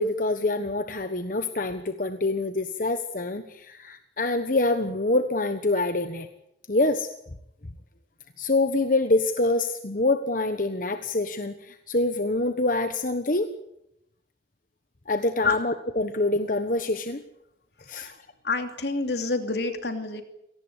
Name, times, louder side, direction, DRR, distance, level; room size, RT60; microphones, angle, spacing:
voice 1, 0.0-6.3 6.7-7.1 8.4-13.5 15.1-17.2 17.9-18.1, left 2 dB, 50° left, 8 dB, 1.2 m, -25 dB
voice 2, 17.9-18.2 18.4-20.2, left 3 dB, 70° left, 7 dB, 2.9 m, -28 dB
25.5 x 18.5 x 8.3 m, 0.84 s
head